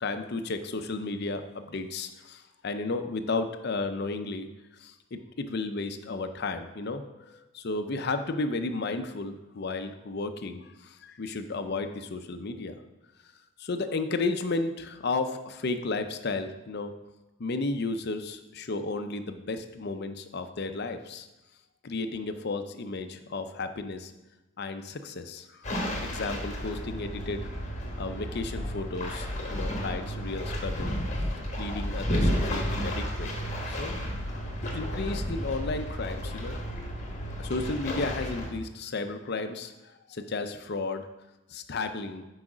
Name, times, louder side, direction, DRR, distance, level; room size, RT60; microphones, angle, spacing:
voice 1, 0.0-4.5 4.8-12.7 13.6-16.9 17.4-21.3 21.8-24.1 24.6-25.7 26.0-27.5 28.0-30.9 31.6-33.3 33.7-33.9 34.7-36.6 37.4-41.1 41.5-42.2, left 3 dB, 50° left, 8 dB, 0.6 m, -33 dB
sound 1, 25.6-38.5, equal, 35° left, 1.4 m, -32 dB
6.2 x 4.8 x 6.1 m, 1.0 s
head